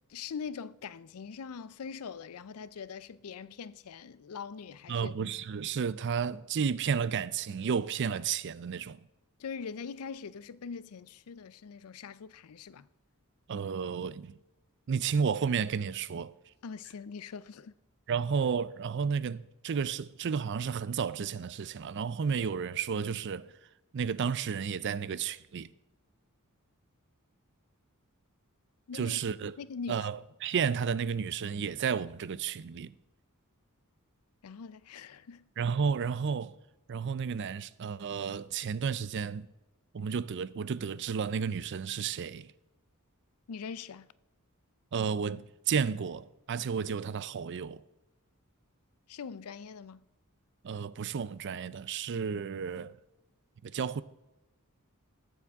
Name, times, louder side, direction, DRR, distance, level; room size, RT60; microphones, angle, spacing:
voice 1, 0.1-5.1 9.4-12.9 16.6-17.7 28.9-29.2 29.6-30.1 34.4-35.4 43.5-44.1 49.1-50.0, left 6 dB, 80° left, 0.5 m, -42 dB
voice 2, 4.9-9.0 13.5-14.3 14.9-16.3 18.1-23.5 23.9-25.7 28.9-29.6 29.9-32.9 35.6-36.5 36.9-39.5 39.9-42.5 44.9-47.8 50.6-53.0 53.6-54.0, right 6 dB, 55° right, 0.4 m, -32 dB
20.0 x 7.3 x 3.6 m
head